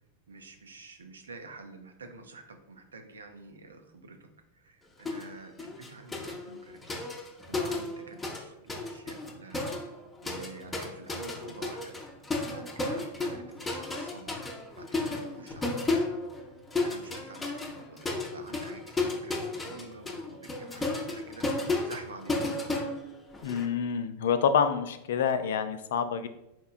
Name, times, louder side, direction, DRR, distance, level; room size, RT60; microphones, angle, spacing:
voice 1, 0.3-7.0 7.5-9.7 10.2-11.9 12.4-14.3 14.8-16.1 16.8-22.6, right 3 dB, 70° right, 6 dB, 0.6 m, -48 dB
sound 1, 5.1-5.3 5.6-8.4 8.7-23.7, left 2 dB, 10° left, 0.7 m, -33 dB
voice 2, 23.4-26.3, left 7 dB, 60° left, 10 dB, 0.3 m, -27 dB
4.4 x 4.3 x 2.4 m, 0.86 s
figure-of-eight pair, 90°, 0 cm